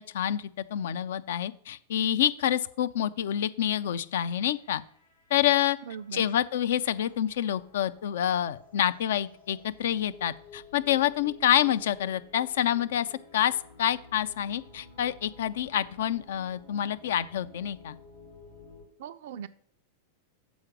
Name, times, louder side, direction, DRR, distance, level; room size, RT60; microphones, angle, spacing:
voice 1, 0.1-4.8 5.3-5.8 6.1-18.0, left 11 dB, 60° left, 13 dB, 0.4 m, -27 dB
sound 1, 3.6-18.9, left 3 dB, 75° left, 2.2 m, -54 dB
voice 2, 5.9-6.3 19.0-19.5, right 8 dB, 55° right, 10 dB, 0.3 m, -39 dB
7.1 x 5.1 x 6.0 m, 0.62 s
figure-of-eight pair, 90°, 0 cm